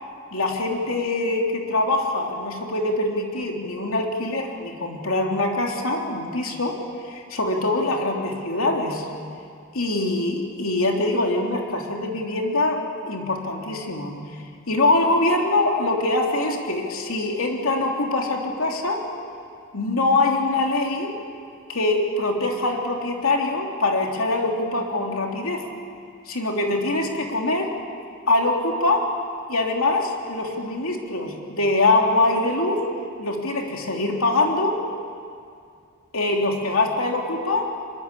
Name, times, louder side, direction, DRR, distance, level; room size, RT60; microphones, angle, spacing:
voice 1, 0.3-6.8 7.0-9.1 9.7-14.2 14.7-19.0 19.7-21.2 21.7-25.6 26.3-27.7 28.3-29.2 29.5-32.8 33.2-34.8 36.1-37.7, left 2 dB, 75° left, 1 dB, 3.2 m, -23 dB
23.5 x 22.0 x 8.5 m, 2.3 s
head